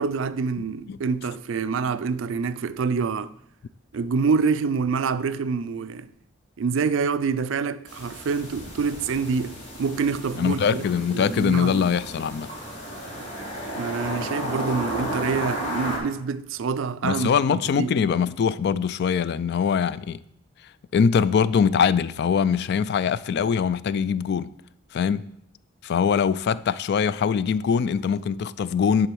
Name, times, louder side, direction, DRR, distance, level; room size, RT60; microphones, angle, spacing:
voice 1, 0.0-3.3 3.9-6.1 6.6-10.9 11.1-11.9 13.7-17.9, right 5 dB, 65° right, 0.4 m, -26 dB
sound 1, 7.9-16.0, equal, 30° left, 2.7 m, -33 dB
voice 2, 10.4-12.5 17.0-20.2 20.9-24.5 24.9-25.3 25.8-29.1, left 6 dB, 55° left, 0.3 m, -22 dB
9.9 x 3.8 x 6.2 m
head